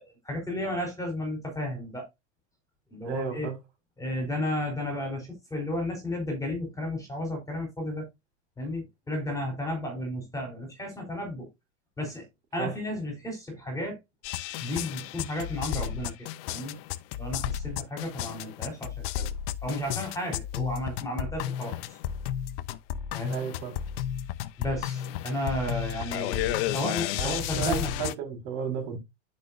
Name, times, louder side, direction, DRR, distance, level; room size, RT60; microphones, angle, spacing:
voice 1, 0.0-2.1 2.9-3.5 4.0-8.1 8.6-11.5 12.0-12.3 12.5-14.0 14.6-16.1 16.5-16.8 17.2-19.3 19.6-21.8 23.1-23.4 24.6-27.9, left 1 dB, 10° left, 3.7 m, -33 dB
voice 2, 3.0-3.5 12.6-12.7 23.2-23.8 27.1-29.0, right 7 dB, 50° right, 4.6 m, -33 dB
sound 1, 14.2-28.1, left 11 dB, 55° left, 0.8 m, -33 dB
10.5 x 5.4 x 2.6 m
supercardioid pair, 130°, 35 cm